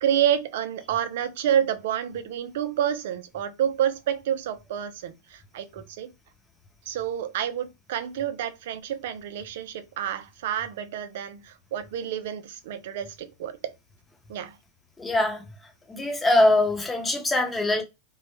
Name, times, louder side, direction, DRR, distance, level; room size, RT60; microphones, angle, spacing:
voice 1, 0.0-6.1 6.9-13.7 14.3-14.6, right 10 dB, 65° right, 0.4 m, -29 dB
voice 2, 15.0-15.4 15.9-17.8, left 1 dB, 10° left, 0.8 m, -22 dB
2.2 x 2.1 x 2.9 m
hypercardioid pair, 120°, 0 cm